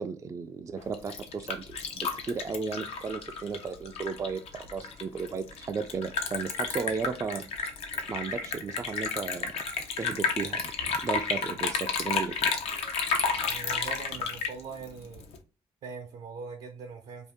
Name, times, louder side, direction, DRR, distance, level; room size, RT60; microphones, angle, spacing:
voice 1, 0.0-7.4 8.1-9.5 10.0-12.5, right 5 dB, 30° right, 8 dB, 0.3 m, -35 dB
Liquid, 0.8-15.4, left 5 dB, 70° left, 0.6 m, -32 dB
voice 2, 13.5-15.2 15.8-17.3, right 5 dB, 70° right, 2 dB, 0.6 m, -42 dB
2.7 x 2.4 x 3.5 m, 0.33 s
supercardioid pair, 65°, 11 cm